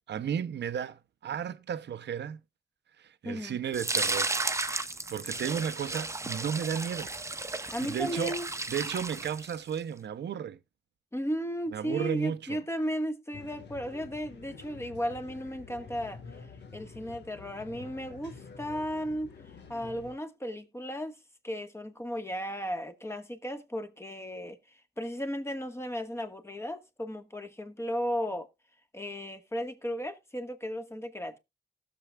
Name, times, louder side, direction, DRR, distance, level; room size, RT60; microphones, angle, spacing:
voice 1, 0.1-2.4 3.0-4.3 4.7-7.1 7.8-8.3 8.7-10.6 11.7-12.6, right 8 dB, 75° right, 0.6 m, -34 dB
voice 2, 3.2-3.6 7.7-8.5 11.1-16.2 16.7-19.3 19.7-21.2 21.4-24.6 25.0-28.5 28.9-31.4, equal, 15° left, 1.4 m, -35 dB
sound 1, 3.7-9.8, right 2 dB, 15° right, 0.7 m, -34 dB
sound 2, 13.3-20.2, left 5 dB, 85° left, 1.4 m, -48 dB
19.0 x 6.9 x 2.2 m
cardioid pair, 80°, 18 cm